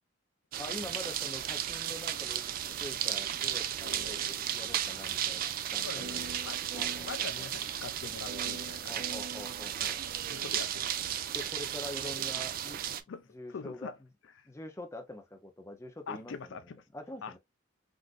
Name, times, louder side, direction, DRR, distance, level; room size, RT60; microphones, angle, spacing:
sound 1, 0.5-13.0, right 10 dB, 45° right, 0.3 m, -34 dB
voice 1, 0.6-2.5 2.8-6.3 6.7-7.5 8.9-10.0 11.3-12.8 13.3-13.9 14.5-16.6 16.9-17.4, left 1 dB, 15° left, 0.6 m, -45 dB
sound 2, 3.5-4.8 5.1-5.2 6.0-7.3 8.2-10.3, right 1 dB, 80° right, 1.7 m, -46 dB
voice 2, 5.8-6.6 7.0-9.0 9.8-9.9 10.3-11.2 13.1-13.9 14.4-14.5 16.1-16.8 17.2-17.4, left 5 dB, 70° left, 0.4 m, -44 dB
3.7 x 2.5 x 2.4 m
head